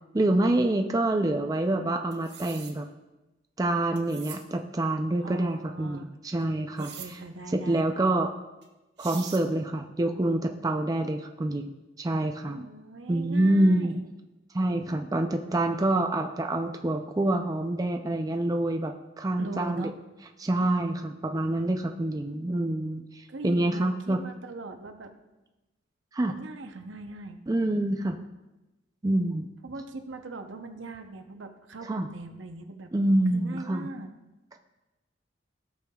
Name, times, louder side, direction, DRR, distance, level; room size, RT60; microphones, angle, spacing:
voice 1, 0.1-2.9 3.6-6.9 7.5-8.3 9.0-12.7 13.1-14.0 14.5-19.9 20.4-24.2 26.1-26.3 27.5-28.2 29.0-29.5 31.9-32.1 32.9-33.9, right 1 dB, 20° right, 4 dB, 0.4 m, -26 dB
sound 1, 2.1-2.7 4.0-4.4 6.8-7.1 8.6-8.7 9.0-9.4, right 8 dB, 60° right, 1.0 m, -43 dB
voice 2, 5.2-6.1 6.8-7.9 12.4-14.1 19.3-19.9 23.3-25.1 26.3-27.4 29.6-32.9 33.3-34.1, right 2 dB, 80° right, 6 dB, 0.8 m, -41 dB
15.0 x 6.4 x 2.3 m, 1.1 s
head